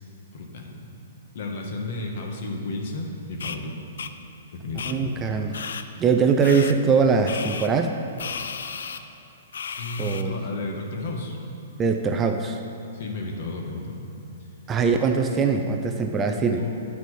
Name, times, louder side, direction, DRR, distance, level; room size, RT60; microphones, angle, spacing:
voice 1, 0.3-0.9 1.3-3.7 4.5-5.2 9.8-11.4 12.9-14.1 16.6-16.7, left 2 dB, 55° left, 1 dB, 1.1 m, -32 dB
sound 1, 3.4-3.6 4.0-4.1 4.8-4.9 5.5-5.8 6.4-6.7 7.3-7.7 8.2-9.0 9.5-10.2, left 6 dB, 80° left, 0.4 m, -33 dB
voice 2, 4.8-5.6 6.0-7.9 10.0-10.3 11.8-12.6 14.7-16.7, right 5 dB, 15° right, 5 dB, 0.4 m, -22 dB
9.7 x 4.2 x 4.7 m, 2.7 s
hypercardioid pair, 150°, 0 cm